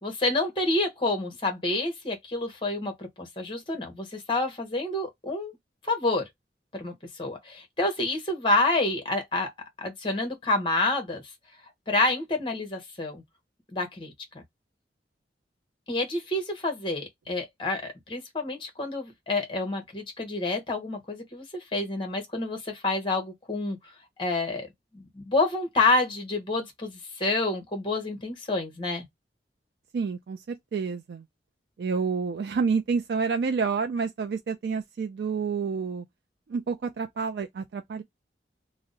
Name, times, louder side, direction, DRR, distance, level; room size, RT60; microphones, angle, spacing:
voice 1, 0.0-5.5 5.8-6.3 6.7-9.5 9.8-11.2 11.9-13.2 13.7-14.1 15.9-23.8 24.2-24.7 24.9-29.1, left 2 dB, 30° left, 0.9 m, -28 dB
voice 2, 29.9-31.2 31.8-36.0 36.5-38.0, right 5 dB, 65° right, 0.3 m, -29 dB
2.6 x 2.1 x 3.8 m
head